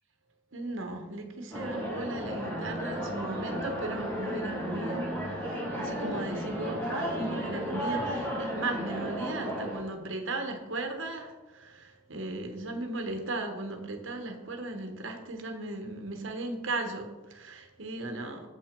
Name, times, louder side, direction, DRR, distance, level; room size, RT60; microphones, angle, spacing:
voice 1, 0.5-18.5, right 2 dB, 65° right, 5 dB, 1.2 m, -37 dB
sound 1, 1.5-9.8, equal, 10° left, 2.4 m, -34 dB
7.6 x 6.1 x 5.2 m, 1.1 s
head